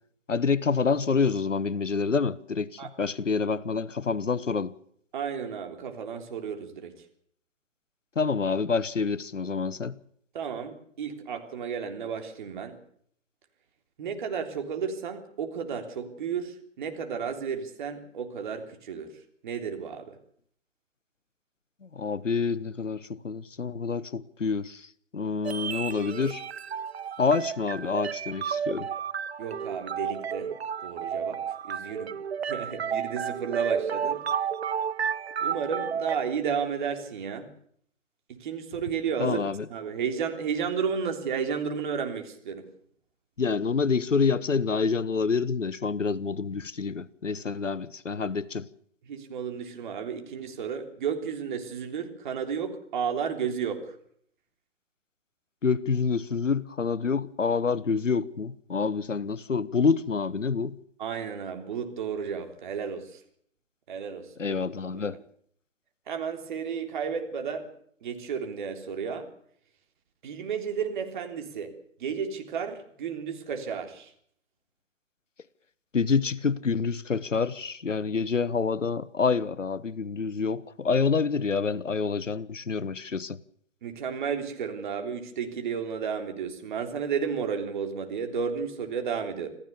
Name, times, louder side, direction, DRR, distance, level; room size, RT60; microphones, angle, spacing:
voice 1, 0.3-4.7 8.1-10.0 21.9-24.9 25.1-26.4 27.2-28.9 39.2-39.6 43.4-48.7 55.6-60.8 64.4-65.2 75.9-83.4, left 5 dB, 85° left, 1.2 m, -27 dB
voice 2, 5.1-6.9 10.3-12.8 14.0-19.1 19.4-20.2 29.4-30.5 30.8-31.4 31.6-32.1 32.4-34.2 35.4-37.5 38.4-39.4 39.7-42.6 49.1-53.9 61.0-63.2 63.9-64.6 64.9-65.2 66.1-67.7 68.0-69.3 70.2-71.7 72.0-74.1 83.8-89.5, right 6 dB, 40° right, 3.5 m, -32 dB
sound 1, 25.4-36.2, right 7 dB, 60° right, 0.9 m, -32 dB
26.5 x 15.0 x 7.0 m
figure-of-eight pair, 145°, 37 cm